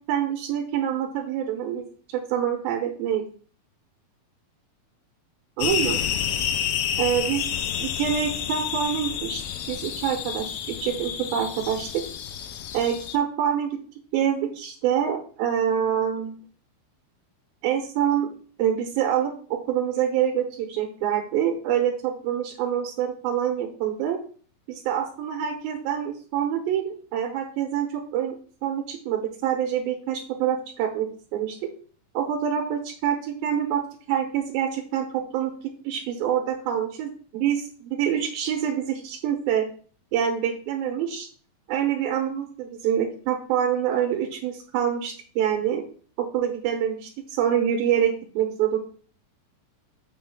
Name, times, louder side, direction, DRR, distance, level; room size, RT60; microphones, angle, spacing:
voice 1, 0.1-1.8 2.1-3.2 5.6-6.0 7.0-7.4 7.8-9.4 9.7-12.0 12.7-13.8 14.1-16.4 17.6-18.3 18.6-24.2 24.7-28.4 28.6-31.7 32.1-33.8 34.1-35.5 35.8-39.7 40.1-41.3 41.7-45.8 46.2-48.8, right 9 dB, 85° right, 2 dB, 2.7 m, -26 dB
sound 1, 5.6-13.2, left 10 dB, 80° left, 2.4 m, -29 dB
7.1 x 6.0 x 3.6 m, 0.43 s
omnidirectional pair, 4.3 m